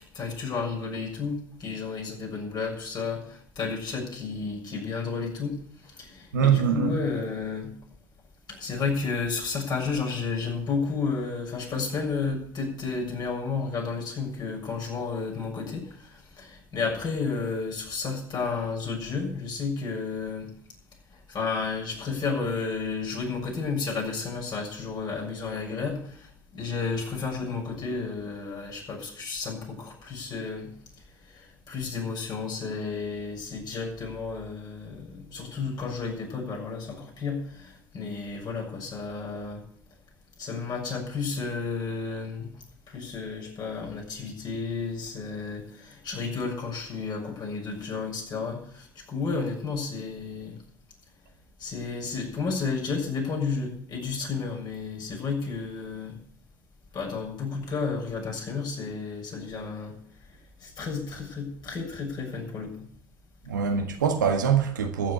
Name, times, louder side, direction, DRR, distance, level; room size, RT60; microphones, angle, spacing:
voice 1, 0.1-5.6 5.8-7.7 8.5-20.5 21.3-30.7 31.3-39.6 40.4-42.5 42.9-50.6 51.6-56.2 56.9-60.0 60.6-62.7, left 4 dB, 45° left, 6.9 m, -32 dB
voice 2, 6.3-6.9 63.5-65.1, right 7 dB, 85° right, 1.7 m, -23 dB
14.5 x 7.6 x 8.3 m
hypercardioid pair, 65°, 10 cm